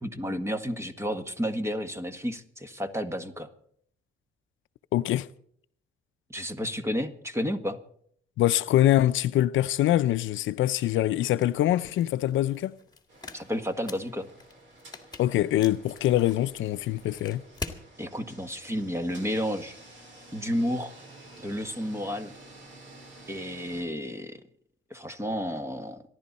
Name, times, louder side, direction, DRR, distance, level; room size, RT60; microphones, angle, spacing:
voice 1, 0.0-3.5 6.3-7.8 13.3-14.3 18.0-19.8 20.3-20.9 21.4-22.3 23.3-24.4 24.9-26.0, equal, 15° right, 1.7 m, -31 dB
voice 2, 4.9-5.3 8.4-12.7 15.2-17.4, left 13 dB, 75° left, 0.6 m, -24 dB
sound 1, 11.2-17.8, left 3 dB, 20° left, 2.0 m, -45 dB
sound 2, 13.1-23.8, right 2 dB, 70° right, 5.5 m, -51 dB
26.0 x 11.5 x 4.2 m
cardioid pair, 90°, 20 cm